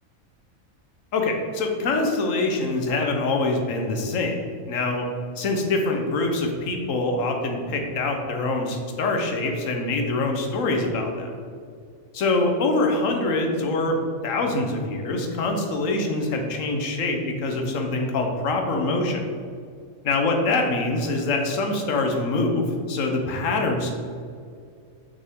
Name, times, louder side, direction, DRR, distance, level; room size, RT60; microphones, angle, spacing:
voice 1, 1.1-5.1 5.4-11.4 12.1-19.2 20.0-23.9, left 2 dB, 75° left, 3 dB, 1.3 m, -24 dB
6.4 x 5.8 x 3.7 m, 2.3 s
omnidirectional pair, 1.4 m